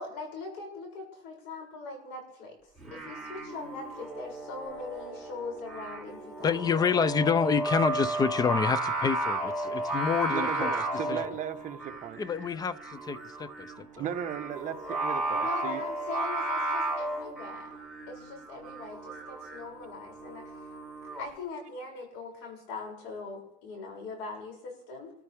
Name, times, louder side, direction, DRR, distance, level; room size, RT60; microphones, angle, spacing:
voice 1, 0.0-6.5 15.3-17.8 18.1-20.7 21.2-25.1, left 3 dB, 70° left, 1 dB, 6.7 m, -41 dB
Singing, 2.8-21.3, right 2 dB, 5° left, 6.2 m, -34 dB
voice 2, 6.4-10.7 11.1-11.2 12.2-14.0, left 6 dB, 20° left, 17 dB, 0.6 m, -28 dB
voice 3, 10.3-12.2 13.9-15.8, right 9 dB, 40° right, 5 dB, 1.3 m, -36 dB
28.0 x 14.0 x 3.5 m, 0.76 s
cardioid pair, 145°, 20 cm